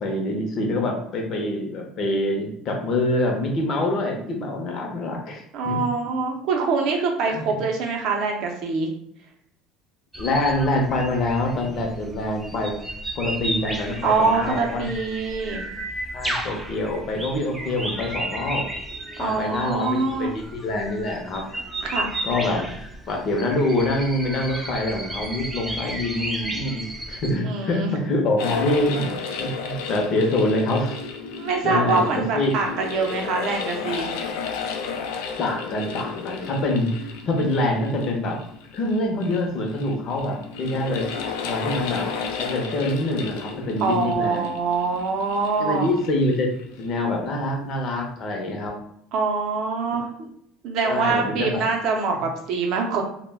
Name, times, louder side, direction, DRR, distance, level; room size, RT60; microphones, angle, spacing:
voice 1, 0.0-5.9 7.3-7.5 10.2-12.8 13.2-14.9 16.1-18.7 19.2-21.5 22.2-22.7 23.1-30.9 31.6-32.6 35.4-38.4 38.7-41.0 41.4-42.1 42.4-44.5 45.6-46.5 46.8-48.7 50.8-51.7, left 1 dB, 40° left, 1 dB, 0.6 m, -25 dB
voice 2, 5.5-8.9 14.0-15.6 19.2-20.3 21.8-22.1 27.4-27.9 31.4-34.1 43.8-45.9 49.1-50.1 50.6-53.0, right 4 dB, 55° right, 1 dB, 0.5 m, -24 dB
sound 1, 10.1-27.4, right 1 dB, 5° right, 0.3 m, -33 dB
sound 2, 28.4-47.0, left 5 dB, 85° left, 0.4 m, -33 dB
2.2 x 2.1 x 3.3 m, 0.74 s
cardioid pair, 155°, 0 cm